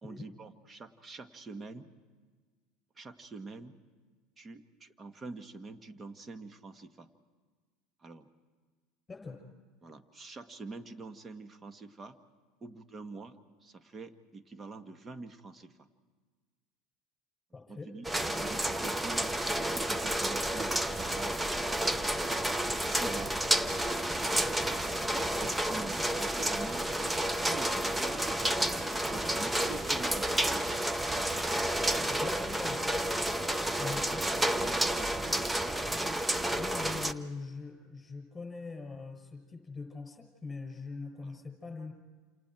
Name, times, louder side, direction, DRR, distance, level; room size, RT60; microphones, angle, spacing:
voice 1, 0.0-1.9 2.9-3.8 4.4-7.1 8.0-8.3 9.8-12.2 12.6-15.8 17.5-21.4 22.8-23.4 25.1-26.9 27.4-28.3 29.0-30.7 33.6-34.3 34.6-35.4 41.2-41.3, right 3 dB, 25° right, 9 dB, 1.6 m, -46 dB
voice 2, 9.1-9.4 17.5-17.9 24.4-24.7 32.1-32.9 33.8-34.3 35.3-35.4 36.6-41.9, left 4 dB, 15° left, 4 dB, 6.5 m, -42 dB
sound 1, 18.0-37.1, right 1 dB, 10° right, 0.8 m, -30 dB
28.5 x 28.0 x 4.6 m, 1.4 s
hypercardioid pair, 85°, 0 cm